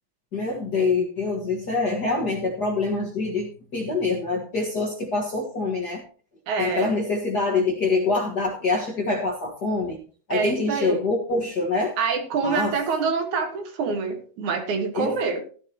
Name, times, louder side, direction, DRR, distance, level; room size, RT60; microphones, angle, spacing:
voice 1, 0.3-6.0 6.6-10.0 10.3-11.9 12.4-12.8 14.9-15.1, left 3 dB, 80° left, -1 dB, 0.9 m, -25 dB
voice 2, 6.5-6.9 10.3-11.0 12.0-15.4, right 5 dB, 55° right, 6 dB, 2.5 m, -26 dB
15.0 x 11.0 x 2.9 m, 0.40 s
omnidirectional pair, 4.7 m